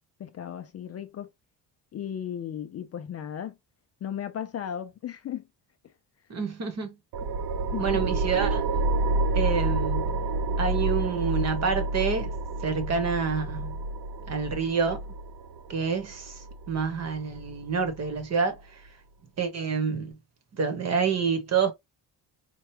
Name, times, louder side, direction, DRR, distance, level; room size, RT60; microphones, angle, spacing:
voice 1, 0.2-1.3 1.9-3.5 4.0-5.4 7.6-8.1, left 9 dB, 40° left, 0.4 m, -35 dB
voice 2, 6.3-6.9 7.8-8.6 9.3-10.2 10.6-12.3 12.6-13.8 14.3-15.0 15.7-18.8 19.4-20.2 20.5-21.7, right 6 dB, 40° right, 1.1 m, -28 dB
sound 1, 7.1-18.2, right 2 dB, 65° right, 0.7 m, -29 dB
4.5 x 2.2 x 3.1 m
cardioid pair, 160°, 41 cm